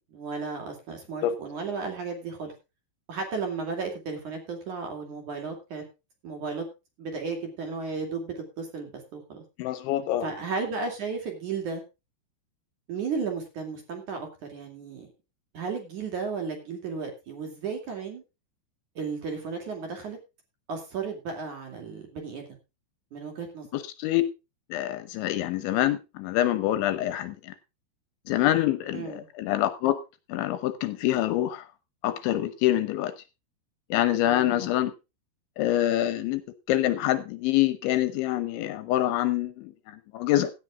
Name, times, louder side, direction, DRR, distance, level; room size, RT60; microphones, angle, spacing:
voice 1, 0.1-2.5 3.1-5.8 6.2-6.7 7.0-9.4 10.2-11.8 12.9-15.1 15.5-18.2 18.9-20.2 20.7-22.5 23.1-23.7 28.9-29.2 34.2-34.7, right 5 dB, 45° right, 4 dB, 3.4 m, -34 dB
voice 2, 9.6-10.3 23.7-24.2 24.7-27.5 28.3-30.0 30.3-31.7 32.0-33.2 33.9-34.9 35.6-36.4 36.7-40.5, left 13 dB, 75° left, 13 dB, 3.0 m, -26 dB
16.5 x 12.0 x 2.4 m, 0.27 s
omnidirectional pair, 5.7 m